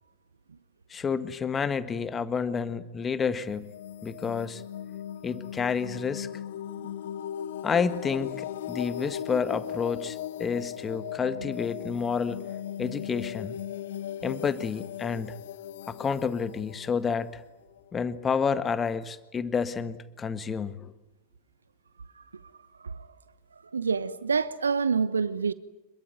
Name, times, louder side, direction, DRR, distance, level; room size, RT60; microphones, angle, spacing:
voice 1, 0.9-3.7 4.0-4.6 5.2-6.3 7.6-12.4 12.8-13.6 14.2-15.3 15.9-17.3 17.9-20.9, left 6 dB, 20° left, 1.6 m, -29 dB
sound 1, 3.5-18.2, left 10 dB, 60° left, 0.9 m, -38 dB
voice 2, 23.7-25.5, right 5 dB, 75° right, 0.9 m, -27 dB
26.5 x 22.5 x 9.2 m
figure-of-eight pair, 90°, 0 cm